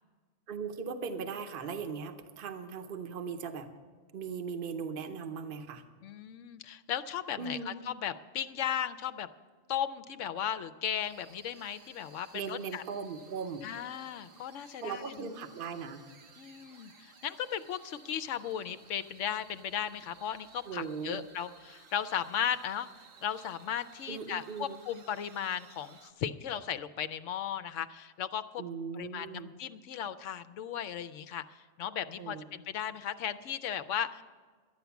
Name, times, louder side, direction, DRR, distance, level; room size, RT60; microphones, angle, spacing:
voice 1, 0.5-3.7 4.1-5.8 7.4-7.8 12.3-13.6 14.8-16.0 20.7-21.2 24.1-24.8 28.6-29.5 32.2-32.5, right 5 dB, 50° right, 7 dB, 0.9 m, -38 dB
voice 2, 6.0-9.3 9.7-12.8 13.6-15.1 16.4-22.9 23.2-28.6 28.9-31.4 31.8-34.2, left 9 dB, 70° left, 12 dB, 0.9 m, -36 dB
sound 1, 10.9-26.1, right 5 dB, 75° right, 1.4 m, -58 dB
12.5 x 9.3 x 7.0 m, 1.5 s
omnidirectional pair, 1.4 m